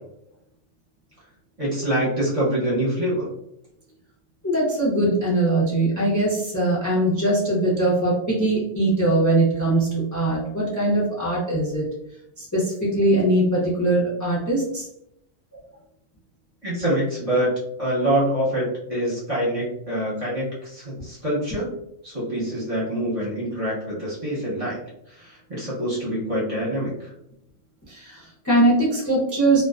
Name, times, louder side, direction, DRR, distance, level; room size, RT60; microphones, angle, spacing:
voice 1, 1.6-3.3 16.6-17.5 17.8-21.7 22.0-24.8 25.2-26.9, right 1 dB, 30° right, -7 dB, 0.7 m, -25 dB
voice 2, 4.4-11.9 12.4-14.9 27.9-29.6, right 1 dB, 30° left, -5 dB, 0.3 m, -21 dB
2.3 x 2.2 x 2.3 m, 0.78 s
omnidirectional pair, 1.4 m